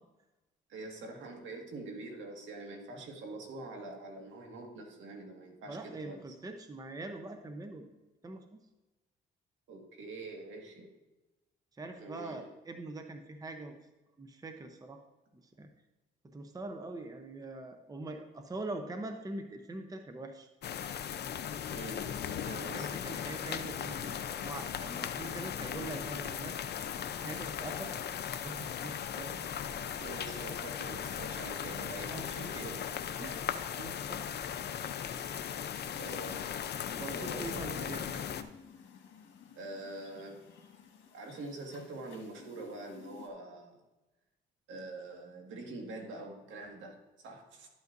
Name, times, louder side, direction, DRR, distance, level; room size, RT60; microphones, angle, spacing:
voice 1, 0.7-6.2 9.7-10.9 12.0-12.5 21.7-22.0 22.5-23.2 27.8-28.0 30.0-32.9 33.2-33.5 33.8-34.0 35.9-36.5 37.1-38.2 39.6-40.4 41.1-43.8 44.7-47.7, right 2 dB, 75° right, 2 dB, 1.9 m, -45 dB
voice 2, 5.7-7.9 8.2-8.6 11.8-13.7 14.2-15.0 15.3-15.7 16.2-20.5 22.6-26.6 27.2-27.9 28.4-29.3 32.1-32.3 37.0-38.0, right 2 dB, 20° right, 6 dB, 0.8 m, -43 dB
sound 1, 20.6-38.4, left 8 dB, 55° left, 0.6 m, -38 dB
sound 2, 36.2-43.3, left 6 dB, 75° left, 1.6 m, -55 dB
12.0 x 8.1 x 2.6 m, 1.1 s
cardioid pair, 90°, 20 cm